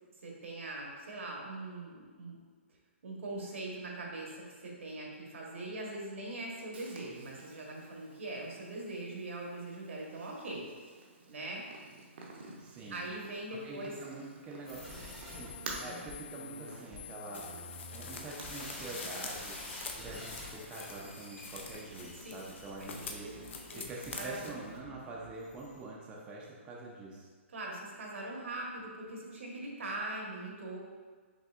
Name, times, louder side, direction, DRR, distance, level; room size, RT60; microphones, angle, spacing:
voice 1, 0.2-2.4 3.0-10.7 11.3-11.6 12.9-13.9 22.8-22.9 23.7-23.8 24.1-24.5 27.5-30.8, right 2 dB, 75° right, -2 dB, 1.2 m, -41 dB
Purr, 6.7-24.8, right 3 dB, 55° right, 0.7 m, -52 dB
voice 2, 12.6-13.0 13.5-14.9 15.3-15.5 15.8-17.5 17.9-19.6 20.0-23.3 23.7-27.3, right 2 dB, 15° right, -4 dB, 0.5 m, -45 dB
sound 1, 14.6-25.8, left 2 dB, 10° left, 0.8 m, -48 dB
sound 2, 17.3-24.5, left 4 dB, 65° left, 0.6 m, -46 dB
5.5 x 3.3 x 2.4 m, 1.5 s
hypercardioid pair, 150°, 7 cm